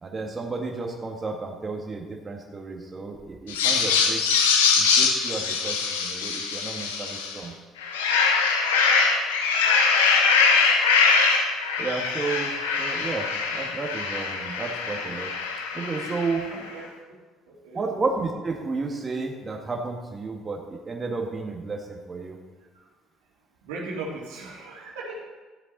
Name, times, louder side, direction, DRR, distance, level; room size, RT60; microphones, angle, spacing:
voice 1, 0.0-4.4 4.8-7.5 11.8-15.3 15.7-16.5 17.7-22.4, right 3 dB, 30° right, 1 dB, 1.8 m, -32 dB
sound 1, 3.5-7.4 7.8-16.5, left 5 dB, 90° left, 1.0 m, -23 dB
voice 2, 16.5-16.9 17.5-17.9 22.8-22.9 23.6-25.2, right 2 dB, 80° right, -3 dB, 2.5 m, -37 dB
13.5 x 7.8 x 4.1 m, 1.3 s
hypercardioid pair, 55°, 0 cm